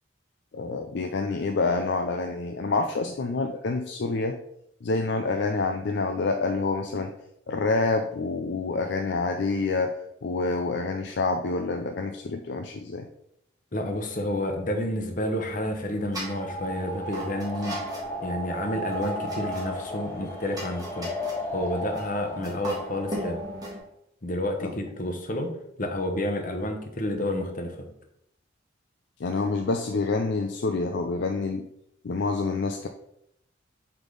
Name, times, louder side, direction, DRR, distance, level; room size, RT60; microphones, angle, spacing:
voice 1, 0.5-4.4 4.8-7.1 7.5-9.9 10.2-13.1 29.2-31.7 32.0-32.9, left 3 dB, 60° left, 5 dB, 0.5 m, -27 dB
voice 2, 13.7-17.8 18.2-21.1 21.5-23.4 24.2-25.5 25.8-27.8, left 1 dB, 45° left, 4 dB, 1.0 m, -30 dB
sound 1, 15.4-23.8, right 1 dB, 20° right, 1.7 m, -40 dB
sound 2, 16.1-23.8, equal, 10° left, 1.1 m, -35 dB
8.1 x 3.7 x 3.9 m, 0.77 s
head